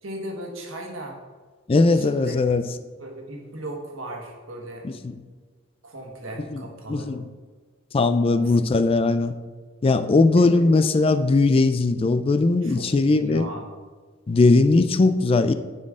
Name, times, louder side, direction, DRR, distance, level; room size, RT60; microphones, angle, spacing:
voice 1, 0.0-1.2 1.9-2.4 3.0-4.9 5.8-7.1 8.3-8.5 10.4-10.6 12.6-13.7, right 1 dB, 85° right, 1 dB, 1.4 m, -37 dB
voice 2, 1.7-2.6 4.8-5.2 6.5-6.6 6.9-7.2 7.9-9.4 9.8-13.5 14.3-15.5, left 3 dB, 30° left, 11 dB, 0.3 m, -19 dB
9.5 x 4.4 x 3.6 m, 1.4 s
head